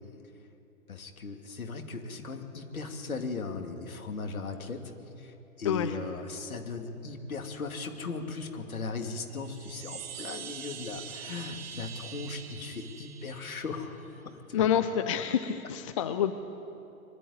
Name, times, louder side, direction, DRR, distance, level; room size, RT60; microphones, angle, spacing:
voice 1, 0.9-4.8 5.2-14.6, left 4 dB, 70° left, 4 dB, 2.6 m, -38 dB
voice 2, 5.6-6.0 14.5-16.4, left 9 dB, 25° left, 10 dB, 0.5 m, -28 dB
Chime, 9.3-14.0, right 8 dB, 45° right, 1.9 m, -44 dB
23.0 x 11.5 x 9.8 m, 2.8 s
figure-of-eight pair, 120°, 44 cm